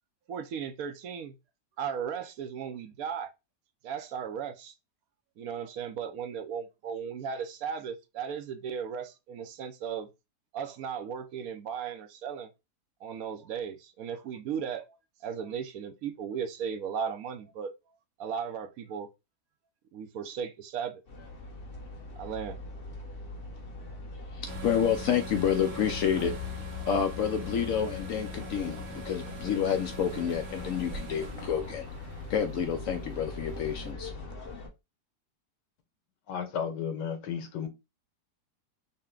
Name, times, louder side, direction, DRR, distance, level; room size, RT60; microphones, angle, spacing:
voice 1, 0.3-1.3 1.8-3.3 3.8-4.7 5.4-10.1 10.5-12.5 13.0-17.7 18.2-19.1 19.9-21.0 22.2-22.6, right 7 dB, 70° right, 0.9 m, -36 dB
sound 1, 21.1-34.7, left 4 dB, 40° left, 1.0 m, -42 dB
voice 2, 24.3-26.4 26.9-31.9 32.3-34.1, left 8 dB, 70° left, 0.8 m, -29 dB
sound 2, 24.5-33.9, right 1 dB, 90° right, 1.6 m, -42 dB
voice 3, 36.3-37.7, left 7 dB, 85° left, 1.5 m, -33 dB
5.5 x 2.2 x 3.7 m
omnidirectional pair, 1.8 m